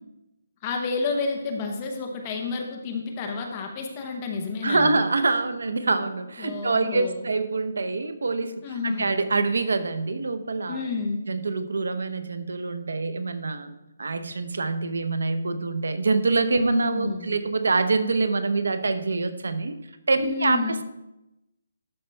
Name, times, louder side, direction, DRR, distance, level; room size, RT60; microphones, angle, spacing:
voice 1, 0.6-5.0 6.4-7.3 8.6-9.1 10.7-11.2 16.6-17.3 20.2-20.8, left 4 dB, 15° left, 2 dB, 0.9 m, -30 dB
voice 2, 4.6-8.5 8.8-10.9 11.3-13.7 14.0-19.7 20.1-20.8, right 3 dB, 80° right, 10 dB, 0.9 m, -25 dB
12.0 x 5.6 x 3.4 m, 0.92 s
hypercardioid pair, 180°, 0 cm